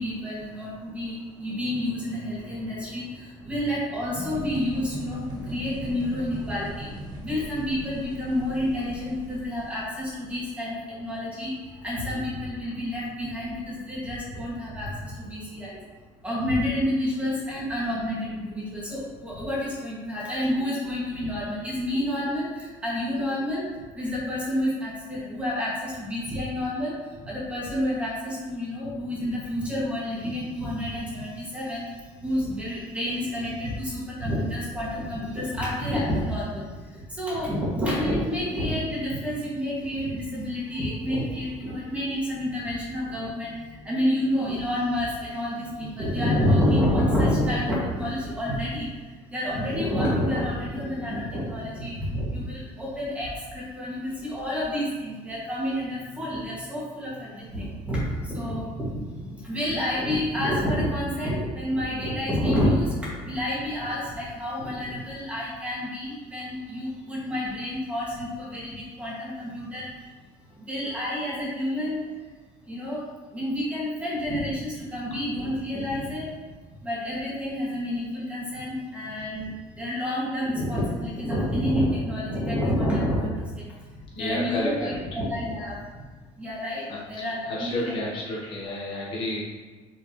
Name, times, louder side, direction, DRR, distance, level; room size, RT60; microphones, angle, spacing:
voice 1, 0.0-6.9 7.2-15.8 16.2-23.6 23.9-70.1 70.5-72.0 72.6-73.0 73.3-76.3 76.8-83.6 83.9-85.8 86.4-87.9, left 1 dB, 10° right, -7 dB, 2.1 m, -29 dB
sound 1, 4.2-10.0, right 1 dB, 30° right, 1.1 m, -38 dB
voice 2, 84.1-85.0 86.9-89.4, left 1 dB, 40° left, -4 dB, 1.3 m, -31 dB
6.5 x 6.1 x 3.2 m, 1.3 s
cardioid pair, 180°, 13 cm